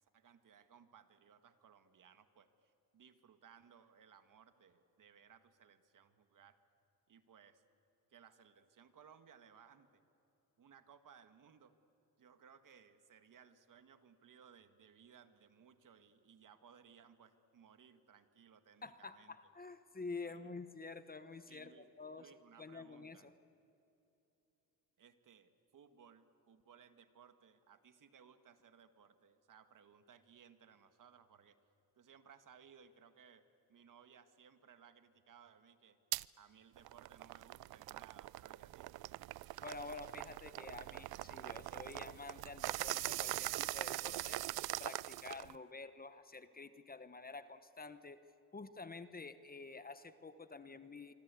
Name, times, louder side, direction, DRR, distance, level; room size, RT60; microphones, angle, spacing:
voice 1, 0.0-6.6 7.1-7.6 8.1-10.0 10.6-11.7 12.2-19.4 20.2-20.5 21.5-21.9 22.2-23.3 25.0-31.6 32.0-36.0 36.4-38.9, right 7 dB, 55° right, 9 dB, 1.7 m, -63 dB
voice 2, 18.8-22.3 22.6-23.3 39.6-48.2 48.5-51.1, left 3 dB, 25° left, 12 dB, 1.1 m, -49 dB
sound 1, 36.1-36.3 36.8-45.6, right 17 dB, 80° right, 0.5 m, -42 dB
25.5 x 25.0 x 8.4 m, 2.9 s
cardioid pair, 95°, 37 cm